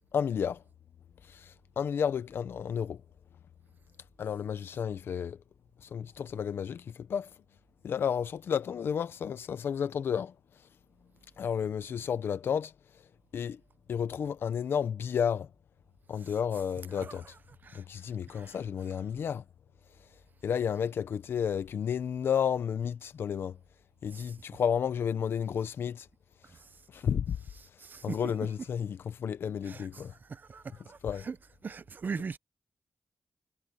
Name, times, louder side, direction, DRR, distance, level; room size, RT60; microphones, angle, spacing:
voice 1, 0.1-0.6 1.3-3.0 4.2-5.4 5.8-7.3 7.8-10.3 11.4-12.7 13.3-13.6 13.9-15.5 16.1-17.3 17.7-19.4 20.4-23.6 24.0-26.1 26.9-27.4 28.0-30.1 31.0-31.3, left 7 dB, 85° left, 0.9 m, -32 dB
voice 2, 27.8-28.2 29.7-29.9 30.3-31.0 31.2-31.4 31.6-32.4, right 5 dB, 55° right, 0.8 m, -39 dB
cardioid pair, 80°, 4 cm